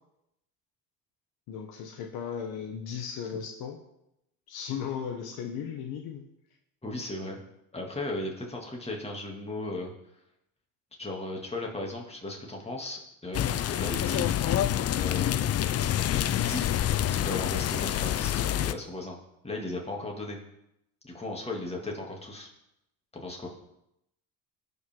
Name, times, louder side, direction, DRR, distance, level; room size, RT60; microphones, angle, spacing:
voice 1, 1.5-3.8 4.5-6.3, left 7 dB, 65° left, 4 dB, 1.3 m, -36 dB
voice 2, 6.8-7.4 7.7-9.9 11.0-14.3 15.0-15.8 16.1-16.7 17.1-19.2 19.4-20.4 21.0-22.5 23.1-23.5, left 2 dB, 15° left, -1 dB, 2.8 m, -36 dB
sound 1, 13.3-18.7, left 11 dB, 40° left, 0.5 m, -27 dB
17.0 x 5.8 x 3.9 m, 0.82 s
supercardioid pair, 85°, 39 cm